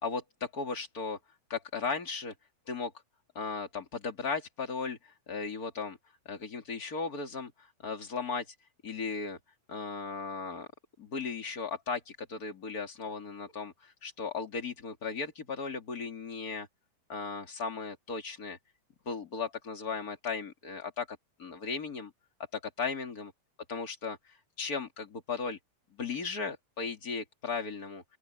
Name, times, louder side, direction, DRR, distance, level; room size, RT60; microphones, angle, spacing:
voice 1, 0.0-1.2 1.5-2.3 2.7-2.9 3.3-6.0 6.2-8.5 8.8-9.4 9.7-10.7 11.0-16.7 17.1-18.6 19.0-22.1 22.5-23.3 23.7-25.6 25.9-28.0, left 4 dB, 30° left, 3.1 m, -36 dB
open air
omnidirectional pair, 3.3 m